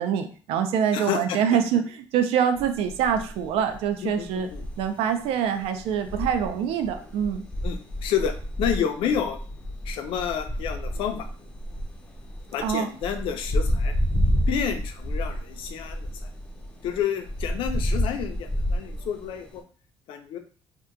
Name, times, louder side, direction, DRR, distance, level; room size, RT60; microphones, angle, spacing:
voice 1, 0.0-1.8 2.1-4.5 4.8-7.4 12.6-12.9, right 8 dB, 85° right, 7 dB, 0.4 m, -25 dB
voice 2, 0.9-1.4 4.0-4.6 7.6-9.4 9.8-11.3 12.5-13.9 14.5-16.3 16.8-19.6 20.1-20.4, left 8 dB, 65° left, 6 dB, 0.5 m, -30 dB
sound 1, 2.5-19.6, equal, 10° left, 0.5 m, -30 dB
2.8 x 2.2 x 3.6 m, 0.41 s
cardioid pair, 160°, 10 cm